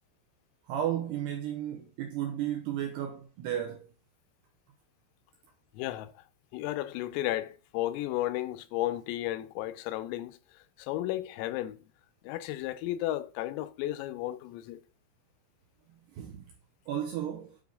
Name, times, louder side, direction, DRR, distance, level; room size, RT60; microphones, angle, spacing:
voice 1, 0.7-3.9 16.1-16.5 16.9-17.5, right 10 dB, 80° right, 2.4 m, -33 dB
voice 2, 5.7-6.2 6.5-11.8 12.2-14.8, left 14 dB, 90° left, 3.4 m, -34 dB
9.2 x 5.3 x 3.5 m
omnidirectional pair, 5.9 m